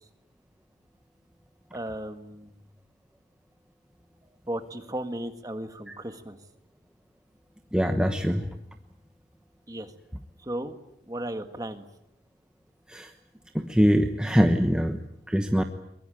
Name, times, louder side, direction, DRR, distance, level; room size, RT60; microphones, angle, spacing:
voice 1, 1.7-2.5 4.5-6.4 9.7-9.9 10.4-10.8 11.1-11.8, right 1 dB, 20° right, 8 dB, 1.7 m, -35 dB
voice 2, 7.7-8.5 12.9-13.1 13.5-15.6, equal, 5° right, 5 dB, 1.1 m, -23 dB
23.0 x 22.0 x 9.1 m, 0.80 s
head